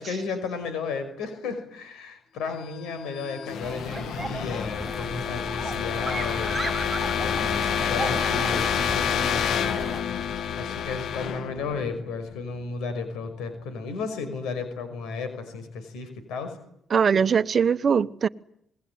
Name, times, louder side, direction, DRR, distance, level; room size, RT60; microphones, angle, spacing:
voice 1, 0.0-6.6 7.1-10.0 10.5-16.6, left 4 dB, 90° left, 5.7 m, -33 dB
sound 1, 2.8-12.5, left 8 dB, 75° left, 1.2 m, -29 dB
sound 2, 3.6-10.0, right 3 dB, 20° right, 2.9 m, -35 dB
voice 2, 16.9-18.3, right 6 dB, 45° right, 1.1 m, -21 dB
26.5 x 21.5 x 9.6 m
cardioid pair, 90°, 0 cm